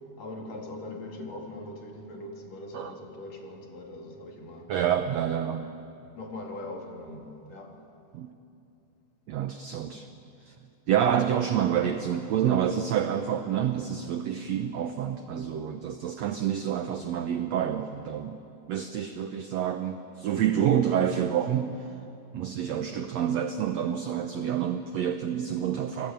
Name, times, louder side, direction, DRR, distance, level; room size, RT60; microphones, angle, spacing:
voice 1, 0.2-4.7 6.1-7.8, left 2 dB, 50° left, 3.4 m, -41 dB
voice 2, 4.7-5.7 8.1-8.3 9.3-10.1 10.4-10.5 10.9-18.4 18.7-21.9 22.3-26.1, right 9 dB, 80° right, 1.5 m, -28 dB
29.0 x 19.0 x 9.1 m
omnidirectional pair, 4.2 m